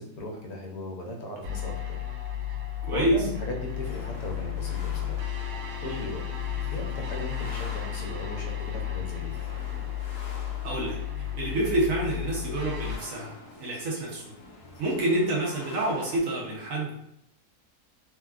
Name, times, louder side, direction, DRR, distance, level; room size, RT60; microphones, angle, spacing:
voice 1, 0.0-2.0 2.5-2.6 2.9-5.3 5.8-6.2 6.7-9.4, left 1 dB, 85° left, 0 dB, 1.2 m, -37 dB
sound 1, 1.4-13.0, left 10 dB, 90° right, 1.2 m, -33 dB
voice 2, 2.8-3.2 5.8-6.0 10.6-11.0 11.4-14.2 14.8-17.0, right 1 dB, 65° right, -4 dB, 1.1 m, -28 dB
sound 2, 3.7-16.2, left 3 dB, 65° left, 0.9 m, -46 dB
3.4 x 2.2 x 2.3 m, 0.78 s
omnidirectional pair, 1.7 m